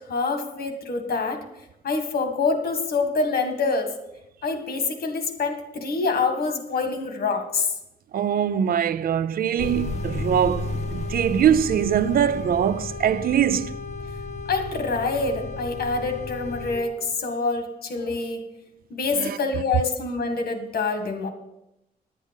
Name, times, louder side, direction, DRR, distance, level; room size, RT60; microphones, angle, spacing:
voice 1, 0.1-1.4 1.8-3.9 4.4-7.7 14.5-18.4 18.9-21.3, left 4 dB, 70° left, 1.7 m, -26 dB
voice 2, 8.1-13.7 19.2-19.4, right 9 dB, 65° right, 0.4 m, -22 dB
sound 1, 9.6-16.8, left 3 dB, 45° left, 1.4 m, -32 dB
11.0 x 8.1 x 5.2 m
wide cardioid pair, 165°, 16 cm